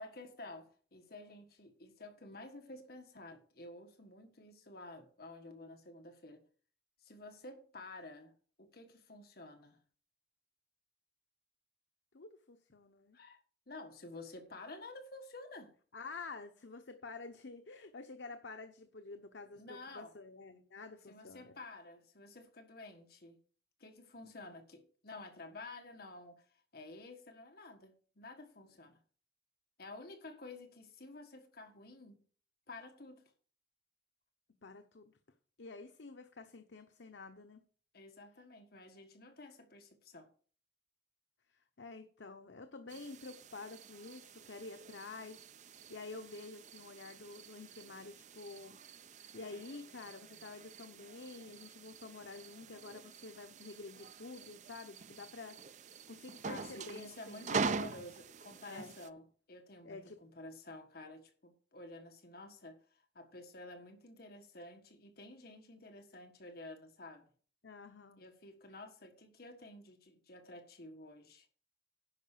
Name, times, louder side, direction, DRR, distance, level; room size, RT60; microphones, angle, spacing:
voice 1, 0.0-6.4 7.0-8.3 8.6-9.8 13.1-13.4 13.7-15.7 19.5-20.1 21.1-23.4 23.8-26.4 26.7-29.0 29.8-32.2 32.7-33.2 37.9-40.3 56.5-67.3 68.2-71.5, left 2 dB, 60° left, 1.6 m, -51 dB
voice 2, 12.1-13.2 15.9-21.5 34.6-35.1 35.6-37.6 41.8-48.8 49.3-55.6 56.1-57.7 58.6-58.9 59.8-60.2 67.6-68.2, left 3 dB, 85° left, 0.9 m, -49 dB
sound 1, 42.9-59.1, right 4 dB, 45° right, 0.5 m, -45 dB
10.5 x 5.6 x 6.8 m
head